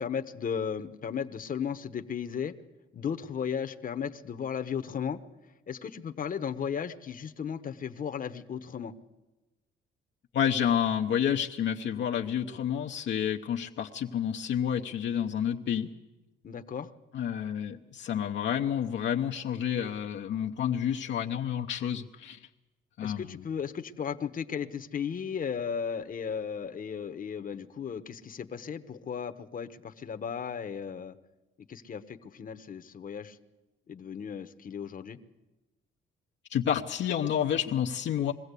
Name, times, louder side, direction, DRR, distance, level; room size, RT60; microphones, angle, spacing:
voice 1, 0.0-2.6 2.9-5.2 5.7-8.9 16.4-16.9 23.0-31.1 31.7-33.4 33.9-35.2, left 7 dB, 45° left, 8 dB, 1.0 m, -35 dB
voice 2, 10.3-15.9 17.1-22.4 23.0-23.4 36.5-38.3, left 9 dB, 65° left, 2 dB, 0.8 m, -29 dB
22.0 x 15.5 x 8.3 m, 1.1 s
cardioid pair, 90°, 20 cm